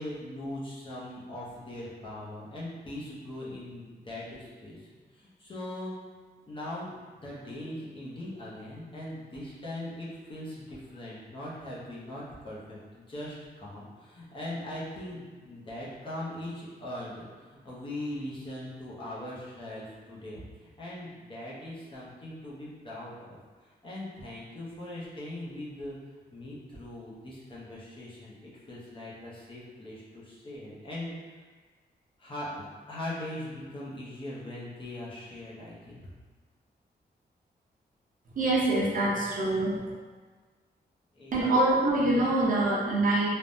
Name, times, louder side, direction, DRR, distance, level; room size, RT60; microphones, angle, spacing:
voice 1, 0.0-5.9 6.5-25.9 26.3-31.1 32.2-36.1 41.1-41.6, left 1 dB, 30° left, -7 dB, 0.6 m, -40 dB
voice 2, 38.4-39.8 41.3-43.3, right 2 dB, 50° right, -6 dB, 0.7 m, -25 dB
3.4 x 2.1 x 2.5 m, 1.4 s
wide cardioid pair, 165°, 17 cm